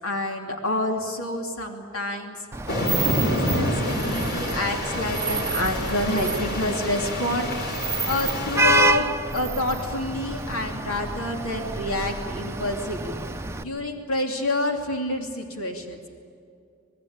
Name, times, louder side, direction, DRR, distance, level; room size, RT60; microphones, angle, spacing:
voice 1, 0.0-2.4 2.9-7.5 8.0-9.1 9.3-13.2 13.6-16.0, left 1 dB, 75° left, 3 dB, 3.0 m, -28 dB
Vehicle horn car horn honking / Traffic noise roadway noise, 2.5-13.6, right 2 dB, 10° right, 0.8 m, -29 dB
sound 1, 2.7-8.8, left 1 dB, 45° left, 4.1 m, -28 dB
27.0 x 20.0 x 8.8 m, 2.4 s
head